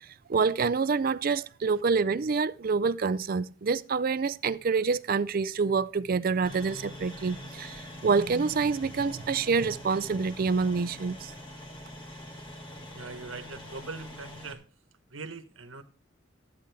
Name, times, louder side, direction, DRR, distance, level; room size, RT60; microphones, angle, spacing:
voice 1, 0.3-11.3, right 5 dB, 45° right, 0.4 m, -27 dB
sound 1, 6.4-14.5, left 1 dB, 25° left, 1.9 m, -44 dB
voice 2, 12.9-14.6 15.1-15.8, right 4 dB, 75° right, 1.2 m, -41 dB
13.0 x 8.7 x 3.4 m
head